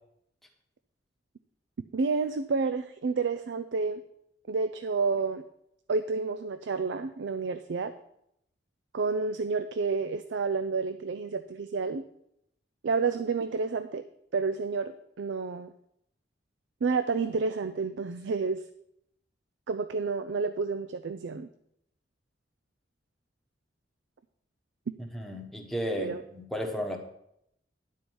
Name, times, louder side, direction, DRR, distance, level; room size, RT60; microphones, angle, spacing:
voice 1, 1.9-4.0 4.5-5.4 5.9-7.9 8.9-12.0 12.8-14.0 14.3-15.7 16.8-18.6 19.7-21.5 26.0-26.2, right 4 dB, 75° right, 10 dB, 0.4 m, -30 dB
voice 2, 25.1-27.0, equal, ahead, 2 dB, 1.0 m, -33 dB
10.0 x 4.6 x 7.0 m, 0.77 s
head